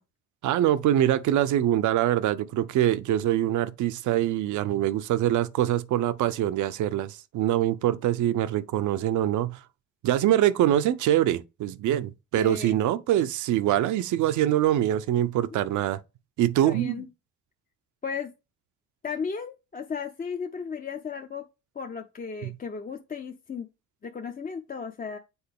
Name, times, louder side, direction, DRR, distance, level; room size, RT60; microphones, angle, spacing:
voice 1, 0.4-9.6 10.0-16.0 16.4-17.0 22.4-22.5, right 12 dB, 75° right, 0.6 m, -24 dB
voice 2, 12.4-12.8 15.5-15.6 16.6-17.1 18.0-18.3 19.0-21.4 21.8-23.7 24.0-25.2, left 6 dB, 30° left, 0.6 m, -35 dB
7.1 x 3.9 x 3.5 m
cardioid pair, 90°, 30 cm